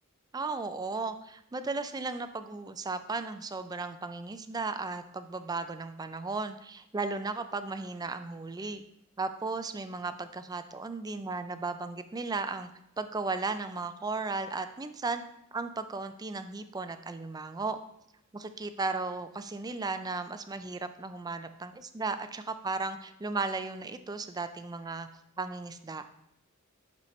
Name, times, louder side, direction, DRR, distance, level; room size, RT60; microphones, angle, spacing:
voice 1, 0.3-8.8 9.2-12.7 13.0-15.2 15.5-17.8 18.3-25.1 25.4-26.1, right 3 dB, 20° right, 10 dB, 0.4 m, -35 dB
11.5 x 4.3 x 3.1 m, 0.80 s
head